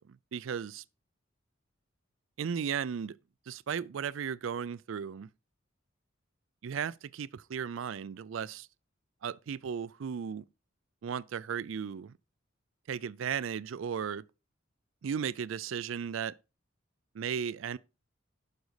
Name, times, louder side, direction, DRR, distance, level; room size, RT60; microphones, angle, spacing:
voice 1, 0.1-0.8 2.4-3.2 3.5-5.3 6.6-8.7 9.2-10.4 11.0-12.1 12.9-14.2 15.0-16.4 17.2-17.8, right 7 dB, 70° right, 0.4 m, -35 dB
11.5 x 5.2 x 4.8 m
head